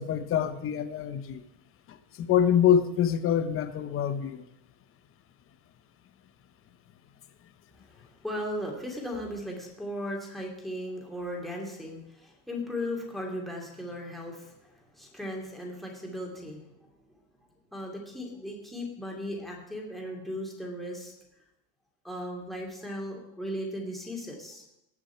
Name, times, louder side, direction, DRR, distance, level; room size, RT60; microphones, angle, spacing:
voice 1, 0.0-1.4 1.9-4.4, left 9 dB, 30° left, 11 dB, 0.9 m, -25 dB
voice 2, 7.9-16.6 17.7-21.1 22.0-24.6, left 1 dB, ahead, -2 dB, 2.8 m, -37 dB
18.5 x 6.3 x 4.6 m, 0.84 s
supercardioid pair, 140°, 44 cm